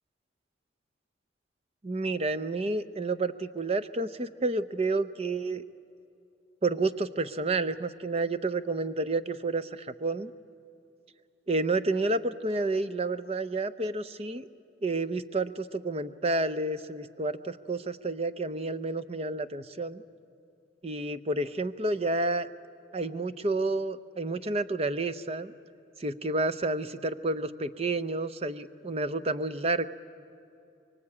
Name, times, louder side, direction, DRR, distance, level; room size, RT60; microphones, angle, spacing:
voice 1, 1.8-5.6 6.6-10.3 11.5-14.5 14.8-20.0 20.8-22.5 22.9-25.5 26.0-29.9, right 2 dB, 30° right, 13 dB, 0.6 m, -30 dB
24.0 x 23.5 x 8.6 m, 2.6 s
head